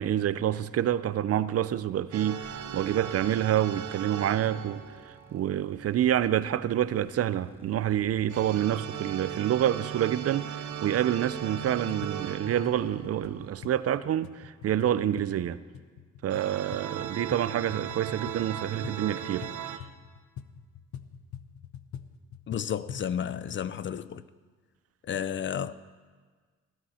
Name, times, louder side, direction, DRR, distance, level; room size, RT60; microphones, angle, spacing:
voice 1, 0.0-4.8 5.1-15.6 16.2-19.5, right 11 dB, 50° right, 0.5 m, -27 dB
sound 1, 2.1-5.9 8.3-13.7 16.3-19.8, right 9 dB, 70° right, 0.9 m, -38 dB
sound 2, 2.4-13.5, equal, 5° right, 1.4 m, -58 dB
sound 3, 11.5-23.1, left 9 dB, 65° left, 0.8 m, -46 dB
voice 2, 22.5-24.2 25.0-25.7, left 8 dB, 40° left, 0.5 m, -32 dB
18.5 x 11.5 x 4.3 m
cardioid pair, 90°, 30 cm